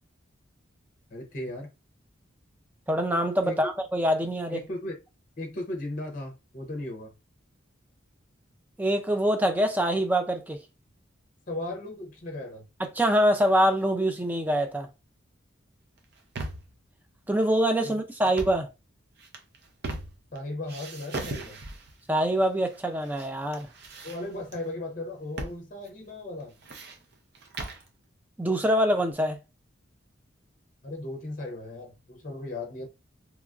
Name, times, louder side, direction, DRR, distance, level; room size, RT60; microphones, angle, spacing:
voice 1, 1.1-1.7 3.4-3.7 4.5-5.0 5.4-7.1 11.5-12.7 17.8-17.9 20.3-21.6 24.0-26.5 30.8-32.9, left 2 dB, 40° left, 0.6 m, -36 dB
voice 2, 2.9-4.6 8.8-10.6 12.8-14.9 17.3-18.7 22.1-23.7 28.4-29.4, equal, 10° right, 0.3 m, -24 dB
sound 1, 16.0-16.8 18.2-18.7 19.2-20.4 20.7-22.0 22.7-23.3 23.5-24.6 25.4-25.6 25.9-26.0 26.4-27.9, right 2 dB, 55° right, 0.6 m, -38 dB
2.9 x 2.4 x 2.4 m
head